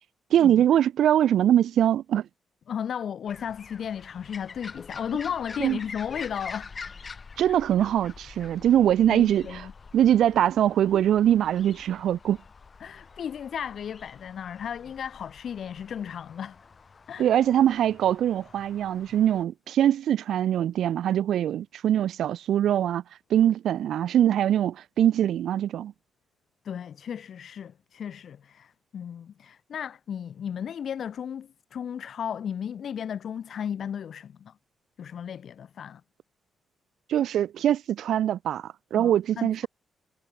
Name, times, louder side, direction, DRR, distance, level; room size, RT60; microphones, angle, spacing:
voice 1, 0.3-2.3 5.6-5.8 7.4-9.7 9.9-12.4 17.2-23.0 23.3-25.9 37.1-39.7, right 10 dB, 70° right, 0.5 m, -23 dB
voice 2, 2.7-6.7 9.1-9.7 12.8-16.6 17.1-17.3 26.6-34.5 35.0-36.0 39.0-39.7, left 8 dB, 50° left, 0.8 m, -35 dB
sound 1, 3.3-19.4, left 5 dB, 30° left, 1.5 m, -46 dB
wide cardioid pair, 165°, 0 cm